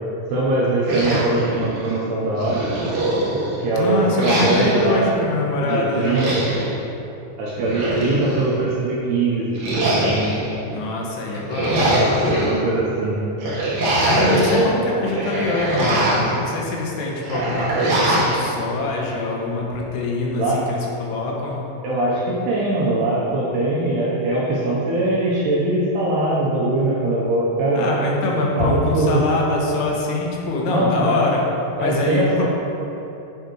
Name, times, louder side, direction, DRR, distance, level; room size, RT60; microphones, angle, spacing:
voice 1, 0.3-2.6 3.6-5.2 5.6-6.5 7.4-9.5 9.8-10.2 12.3-13.2 14.5-14.8 20.3-20.6 21.8-27.9 28.6-29.2 30.7-31.2 31.8-32.4, right 2 dB, 80° right, -6 dB, 2.4 m, -21 dB
sound 1, 0.8-2.0 2.4-3.6 4.2-4.9 5.9-6.7 7.5-8.5 9.5-10.5 11.3-12.5 13.4-14.6 15.0-16.4 17.2-18.4, right 1 dB, 65° right, 2.3 m, -22 dB
voice 2, 3.7-6.3 10.7-11.9 14.0-21.6 27.7-31.4 31.8-32.4, left 2 dB, 85° left, -2 dB, 3.7 m, -24 dB
9.1 x 7.1 x 3.1 m, 2.9 s
omnidirectional pair, 5.8 m